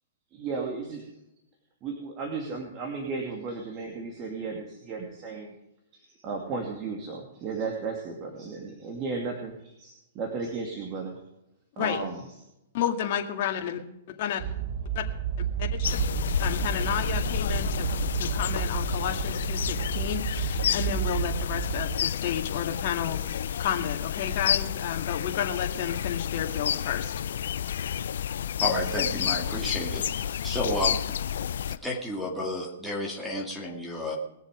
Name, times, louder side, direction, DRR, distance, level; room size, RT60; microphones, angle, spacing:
voice 1, 0.3-1.1 1.8-5.6 6.2-11.2 11.8-12.2 15.8-16.0, right 4 dB, 30° right, 0 dB, 2.5 m, -34 dB
voice 2, 12.7-13.8 14.2-14.4 15.0-15.1 15.6-15.7 16.4-27.1, left 9 dB, 50° left, 4 dB, 2.1 m, -31 dB
sound 1, 14.4-22.0, right 9 dB, 45° right, 1.4 m, -31 dB
sound 2, 15.8-31.8, left 9 dB, 70° left, 0.5 m, -30 dB
voice 3, 28.6-31.0 31.6-34.2, left 1 dB, 5° right, 0 dB, 2.3 m, -31 dB
21.0 x 7.2 x 5.0 m, 0.85 s
hypercardioid pair, 145°, 0 cm